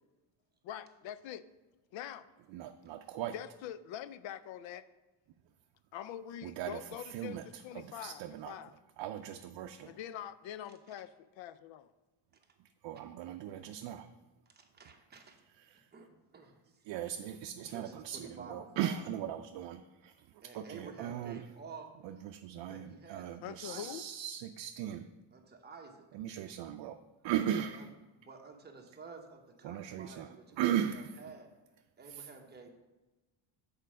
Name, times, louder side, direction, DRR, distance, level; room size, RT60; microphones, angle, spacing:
voice 1, 0.6-1.4 1.9-2.3 3.3-4.8 5.9-8.7 9.8-11.9 23.4-24.0, left 10 dB, 80° left, 15 dB, 0.5 m, -44 dB
voice 2, 2.5-3.3 6.4-8.6 9.0-9.9 12.8-14.1 15.5-15.9 16.8-21.4 22.0-25.1 26.1-27.0 27.2-27.9 29.6-31.2 32.1-32.3, right 10 dB, 75° right, 6 dB, 0.5 m, -38 dB
voice 3, 14.5-15.3 15.9-16.1 16.3-16.8 17.7-19.0 20.4-21.9 22.7-23.9 25.3-26.0 27.6-27.8 28.2-30.6 30.9-31.5 32.0-32.7, right 4 dB, 20° right, 2 dB, 0.9 m, -51 dB
6.7 x 4.5 x 6.2 m, 1.1 s
cardioid pair, 155°, 45 cm